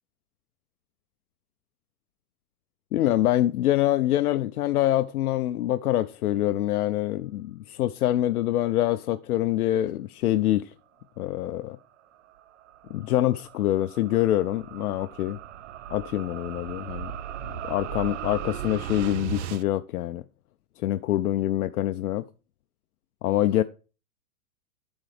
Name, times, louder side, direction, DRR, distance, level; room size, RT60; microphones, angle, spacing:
voice 1, 2.9-10.7 11.2-11.8 12.9-15.4 15.9-17.1 17.6-20.2 20.8-22.2 23.2-23.6, left 13 dB, 80° left, 0.6 m, -25 dB
sound 1, 11.8-19.6, right 10 dB, 55° right, 0.5 m, -37 dB
11.5 x 4.0 x 3.3 m
hypercardioid pair, 160°, 44 cm